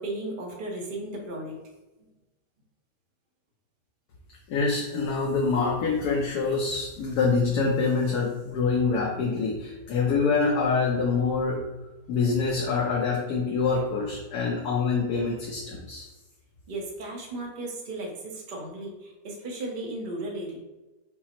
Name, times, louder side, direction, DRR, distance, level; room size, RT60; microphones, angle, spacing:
voice 1, 0.0-1.6 16.7-20.6, right 2 dB, 40° right, 0 dB, 0.8 m, -35 dB
voice 2, 4.5-11.6 12.1-16.0, left 4 dB, 70° left, -2 dB, 1.2 m, -25 dB
5.6 x 2.0 x 4.3 m, 1.1 s
omnidirectional pair, 1.8 m